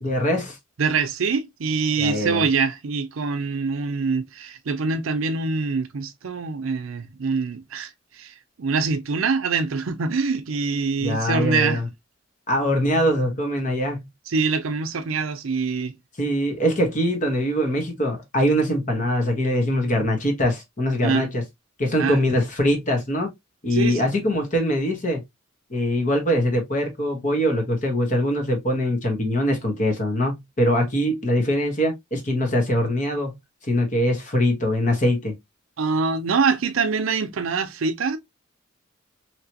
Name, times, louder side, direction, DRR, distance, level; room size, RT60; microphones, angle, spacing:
voice 1, 0.0-0.6 2.0-2.4 11.0-11.9 12.5-14.1 16.2-21.4 21.8-23.3 23.6-25.2 25.7-33.3 33.6-35.3, equal, 40° left, 1.1 m, -22 dB
voice 2, 0.8-11.8 14.3-15.9 21.0-21.3 22.0-22.2 23.7-24.1 35.8-38.2, right 4 dB, 80° right, 0.6 m, -24 dB
3.0 x 3.0 x 2.7 m
head